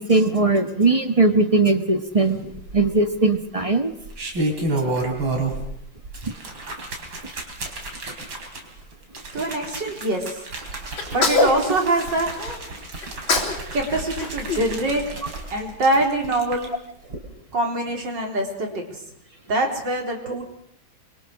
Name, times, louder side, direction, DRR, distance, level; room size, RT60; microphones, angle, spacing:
voice 1, 0.0-3.9 6.2-6.3 20.2-20.4, right 3 dB, 20° right, 8 dB, 1.2 m, -20 dB
sound 1, 2.4-3.1 3.9-5.7 6.0-16.7 17.0-17.2, right 2 dB, 80° right, 4.6 m, -31 dB
voice 2, 9.3-10.3 11.1-12.3 13.7-15.1 15.5-16.7 17.5-18.9 19.5-20.4, right 1 dB, 65° right, 2 dB, 4.5 m, -24 dB
Sneeze, 11.0-12.6 13.0-13.6 13.9-15.4, left 3 dB, 90° left, 4.0 m, -25 dB
26.5 x 23.0 x 6.4 m, 0.73 s
omnidirectional pair, 2.1 m